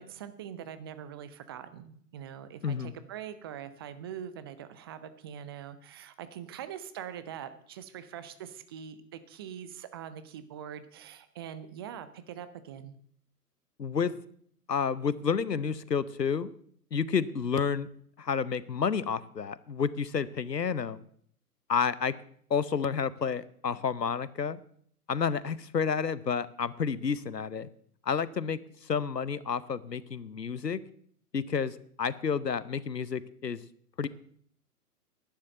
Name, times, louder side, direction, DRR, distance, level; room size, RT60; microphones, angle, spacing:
voice 1, 0.0-12.9, right 9 dB, 15° right, 12 dB, 0.5 m, -43 dB
voice 2, 13.8-14.1 14.7-16.5 16.9-17.9 18.2-21.0 21.7-22.1 22.5-24.6 25.1-27.7 28.1-28.6 28.9-30.8 31.3-33.6 34.0-34.1, left 6 dB, 85° left, 18 dB, 0.9 m, -30 dB
11.5 x 9.6 x 7.7 m, 0.63 s
figure-of-eight pair, 120°, 48 cm